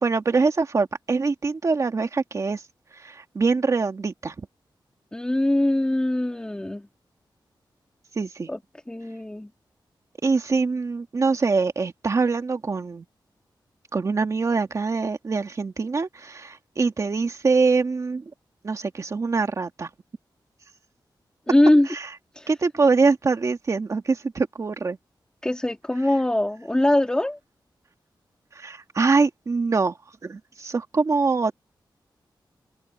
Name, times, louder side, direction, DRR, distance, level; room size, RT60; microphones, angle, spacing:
voice 1, 0.0-2.6 3.0-4.3 8.2-8.5 10.2-13.1 13.9-18.2 18.6-19.9 21.9-22.1 22.5-25.0 28.6-30.0 30.2-31.5, right 4 dB, 40° right, 2.0 m, -24 dB
voice 2, 5.1-6.9 8.5-8.6 8.9-9.5 21.5-21.9 22.3-22.5 25.4-27.4, left 1 dB, 10° left, 2.8 m, -22 dB
open air
wide cardioid pair, 170°, 8 cm